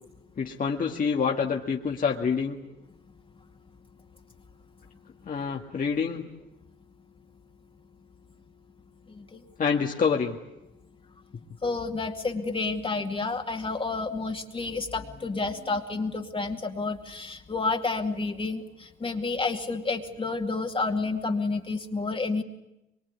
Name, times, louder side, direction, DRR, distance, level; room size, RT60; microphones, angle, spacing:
voice 1, 0.4-2.6 5.3-6.2 9.6-10.4, left 6 dB, 45° left, 0 dB, 2.0 m, -27 dB
voice 2, 11.6-22.4, left 3 dB, 25° left, 3 dB, 2.3 m, -30 dB
24.0 x 23.5 x 9.6 m, 0.90 s
cardioid pair, 90°, 20 cm